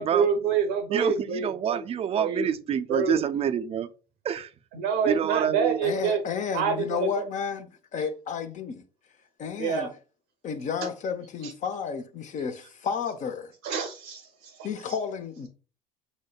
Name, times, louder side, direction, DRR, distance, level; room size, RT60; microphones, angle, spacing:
voice 1, 0.0-1.8 2.2-2.5 2.9-3.2 4.7-6.2 6.5-7.2 9.6-9.9 11.4-11.5 13.6-14.5, right 6 dB, 70° right, 0.7 m, -27 dB
voice 2, 0.9-3.9 4.2-4.5 5.0-5.8, right 9 dB, 30° right, 0.4 m, -27 dB
voice 3, 5.8-8.8 9.4-9.9 10.4-13.5 14.6-15.5, left 6 dB, 40° left, 0.7 m, -32 dB
6.2 x 2.1 x 2.3 m
hypercardioid pair, 65°, 19 cm